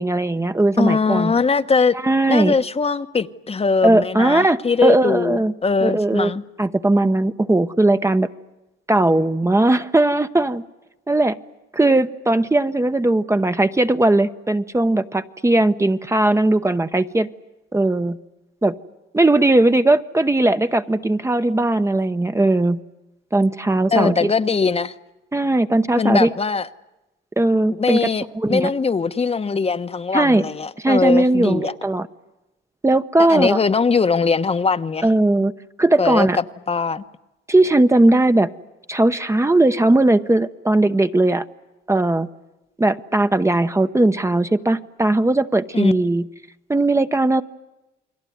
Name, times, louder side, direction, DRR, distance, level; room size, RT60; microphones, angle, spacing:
voice 1, 0.0-1.3 2.0-2.5 3.8-5.5 5.8-6.3 6.6-8.3 8.9-10.6 11.1-11.4 11.7-17.3 17.7-18.2 18.6-18.7 19.1-22.8 23.3-24.3 25.3-26.3 27.4-28.1 28.3-28.7 30.1-30.4 30.8-32.1 32.8-33.6 35.0-35.5 35.8-36.4 37.5-38.5 38.9-41.4 41.9-42.3 42.8-46.3 46.7-47.4, right 2 dB, 15° right, 1.0 m, -18 dB
voice 2, 0.8-1.9 2.3-6.4 23.9-24.9 26.0-26.7 27.8-31.7 33.2-35.1 36.0-37.0 45.7-45.9, left 5 dB, 30° left, 1.1 m, -21 dB
29.5 x 21.5 x 9.4 m
cardioid pair, 90°, 20 cm